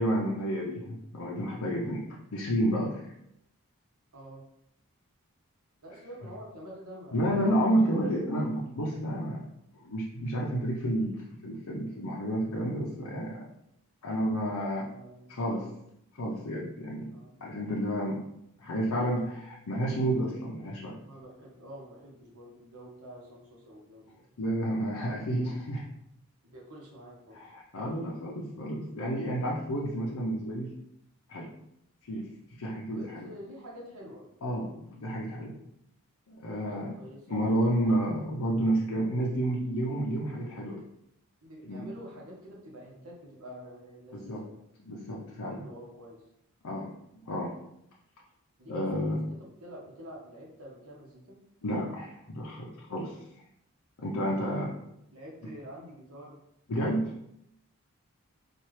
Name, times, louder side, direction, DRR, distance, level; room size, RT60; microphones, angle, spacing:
voice 1, 0.0-2.1 2.3-3.0 7.1-9.4 9.8-13.5 14.0-14.8 15.3-15.6 16.2-17.1 17.4-18.2 18.6-21.0 24.4-25.8 27.3-30.7 31.3-31.5 32.1-32.3 32.6-33.3 34.4-35.6 36.3-36.9 37.3-40.8 41.6-41.9 44.1-44.5 44.8-45.6 46.6-46.9 47.3-47.5 48.7-49.2 51.6-53.1 54.0-54.7 56.7-57.1, right 1 dB, 90° left, -4 dB, 0.7 m, -30 dB
voice 2, 4.1-4.4 5.8-7.4 14.4-15.7 17.1-17.3 21.0-24.2 26.4-27.4 32.9-34.3 36.4-37.9 41.4-44.6 45.4-46.2 48.6-51.4 54.2-54.7 55.1-56.4, equal, 75° right, -2 dB, 1.1 m, -47 dB
4.3 x 2.4 x 3.2 m, 0.77 s
head